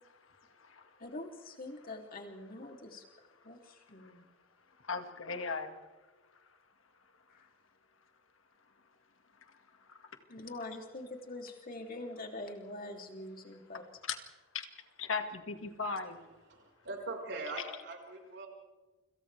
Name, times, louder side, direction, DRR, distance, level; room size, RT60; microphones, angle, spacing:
voice 1, 0.3-0.9 4.0-4.1 4.8-5.8 9.9-10.1 13.7-14.2 14.5-14.7 15.0-16.2, left 4 dB, 80° left, 6 dB, 2.1 m, -38 dB
voice 2, 1.0-3.0 3.4-4.3 10.3-13.8, left 2 dB, 45° left, 2 dB, 3.1 m, -44 dB
voice 3, 16.5-18.5, right 2 dB, 60° right, 1 dB, 5.3 m, -41 dB
29.5 x 26.0 x 3.5 m, 1.2 s
head